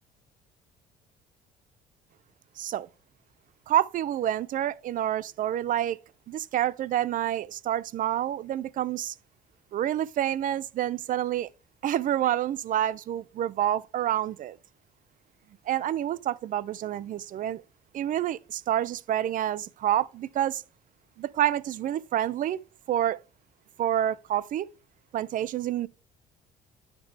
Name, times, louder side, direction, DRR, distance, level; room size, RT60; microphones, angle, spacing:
voice 1, 2.6-2.9 3.7-6.0 6.3-9.1 9.7-11.5 11.8-14.6 15.7-17.6 17.9-20.6 21.2-22.6 22.9-23.2 23.8-24.7 25.1-25.9, right 11 dB, 50° right, 0.5 m, -28 dB
9.7 x 5.1 x 3.3 m
cardioid pair, 110°, 17 cm